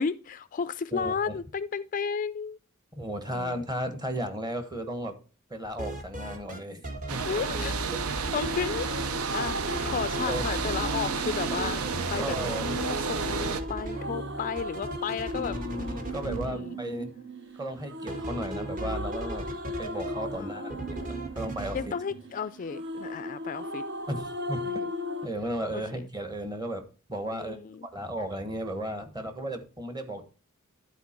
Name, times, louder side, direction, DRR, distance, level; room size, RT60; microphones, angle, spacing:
voice 1, 0.0-2.6 3.3-3.5 7.2-7.9 8.3-8.9 9.3-11.8 12.1-15.6 16.2-16.8 20.3-20.6 21.7-23.8 24.6-24.7 25.7-26.1 27.3-27.9, left 6 dB, 40° left, 15 dB, 0.3 m, -33 dB
voice 2, 0.9-1.4 3.0-5.1 5.5-6.8 7.1-7.2 7.9-8.0 10.3-10.4 12.2-12.7 15.3-17.1 17.5-19.5 19.8-21.8 24.1-24.7 25.2-26.8 27.1-30.3, right 1 dB, 20° right, 7 dB, 1.3 m, -35 dB
sound 1, 5.6-6.6 6.8-9.1 9.5-11.0 11.3-16.5 18.1-20.4 20.7-21.8, right 1 dB, 40° right, 1.5 m, -37 dB
sound 2, 7.1-13.6, right 5 dB, 85° right, 0.7 m, -32 dB
sound 3, 8.2-25.3, left 1 dB, 55° right, 1.1 m, -37 dB
11.5 x 4.4 x 4.3 m, 0.36 s
head